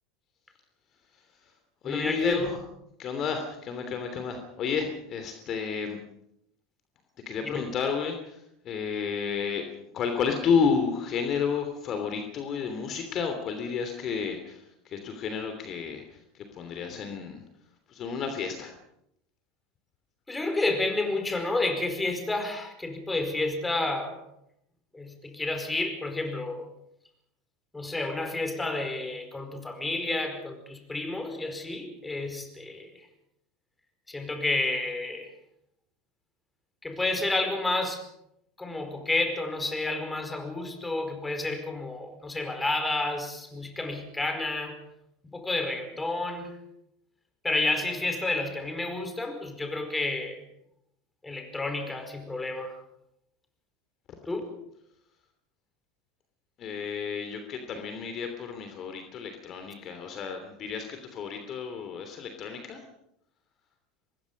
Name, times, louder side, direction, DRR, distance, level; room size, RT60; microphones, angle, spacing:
voice 1, 1.1-1.5 1.8-2.6 3.0-6.0 7.2-9.6 9.9-17.4 17.9-18.7 56.6-62.8, left 6 dB, 40° left, 6 dB, 3.0 m, -31 dB
voice 2, 1.8-2.5 7.5-7.6 20.3-24.2 24.9-26.7 27.7-32.9 34.1-35.3 36.8-38.0 38.6-44.8 45.2-46.5 47.4-50.4 51.2-52.8 54.3-54.5, left 2 dB, 10° left, 6 dB, 4.8 m, -30 dB
24.5 x 20.5 x 5.4 m, 0.77 s
figure-of-eight pair, 75°, 0 cm